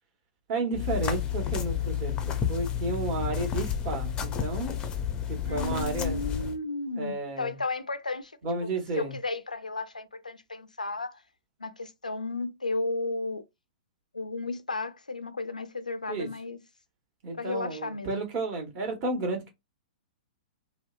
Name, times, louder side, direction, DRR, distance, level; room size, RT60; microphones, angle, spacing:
voice 1, 0.5-4.7 5.3-6.2 7.0-7.6 8.4-9.1 16.1-16.3 17.2-19.5, right 3 dB, 40° right, 1.0 m, -32 dB
sound 1, 0.7-6.5, left 9 dB, 20° left, 0.4 m, -31 dB
voice 2, 5.5-8.7 9.0-11.2 11.6-13.4 14.1-16.6 17.4-18.3, left 3 dB, 90° left, 0.4 m, -34 dB
2.7 x 2.0 x 2.3 m
figure-of-eight pair, 110°, 4 cm